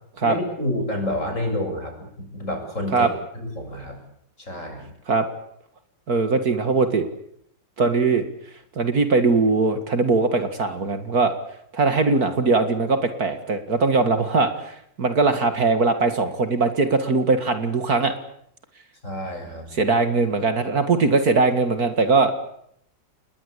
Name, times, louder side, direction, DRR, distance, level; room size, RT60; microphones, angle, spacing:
voice 1, 0.2-4.0 4.4-4.9 19.0-19.7, left 1 dB, 40° left, 3 dB, 7.5 m, -29 dB
voice 2, 6.1-7.1 7.8-8.2 8.8-11.3 11.7-18.1 19.7-22.3, right 3 dB, 55° right, 9 dB, 2.5 m, -20 dB
29.0 x 21.0 x 8.3 m, 0.71 s
omnidirectional pair, 1.9 m